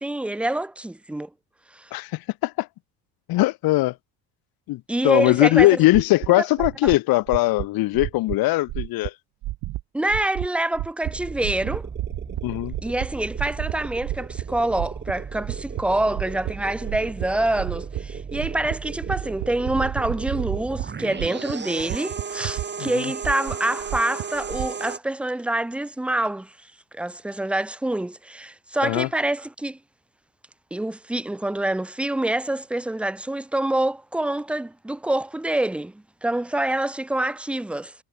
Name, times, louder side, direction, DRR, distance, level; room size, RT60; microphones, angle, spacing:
voice 1, 0.0-1.3 1.7-1.9 4.9-5.8 6.4-6.5 6.8-6.9 9.9-11.9 12.8-26.5 26.9-29.8 30.7-37.9, right 1 dB, 5° right, 0.4 m, -26 dB
voice 2, 3.3-3.9 4.7-9.1 12.4-12.7 22.8-23.0 28.8-29.1, left 18 dB, 50° left, 0.6 m, -20 dB
sound 1, 5.6-5.7 5.9-6.3 6.6-7.0 7.3-7.7 7.9-8.4 8.7-9.1 9.4-9.8 10.1-10.5 10.7-11.1 11.4-12.4 12.7-13.1 13.4-13.7 14.0-14.4 14.7-15.8 16.1-16.5 16.8-17.3 17.6-18.0 18.3-18.8 19.0-20.9 21.2-21.5 21.8-22.9 23.2-24.7, right 17 dB, 70° right, 2.6 m, -30 dB
sound 2, 11.0-25.0, right 6 dB, 25° right, 1.2 m, -35 dB
supercardioid pair, 80°, 46 cm